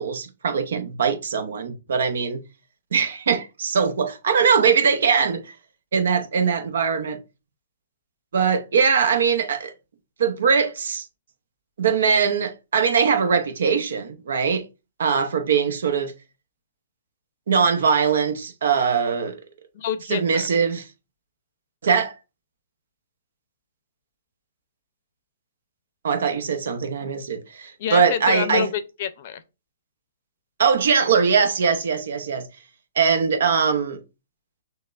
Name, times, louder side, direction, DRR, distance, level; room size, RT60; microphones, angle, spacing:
voice 1, 0.0-2.4 2.9-5.6 5.9-7.2 8.3-9.7 10.2-11.1 11.8-14.6 15.0-16.1 17.5-19.4 20.1-20.9 21.8-22.1 26.0-28.7 30.6-32.5 33.0-34.0, right 6 dB, 70° right, 0.7 m, -21 dB
voice 2, 19.7-20.5 27.8-29.4, left 9 dB, 45° left, 0.5 m, -27 dB
6.4 x 2.1 x 2.4 m
hypercardioid pair, 155°, 0 cm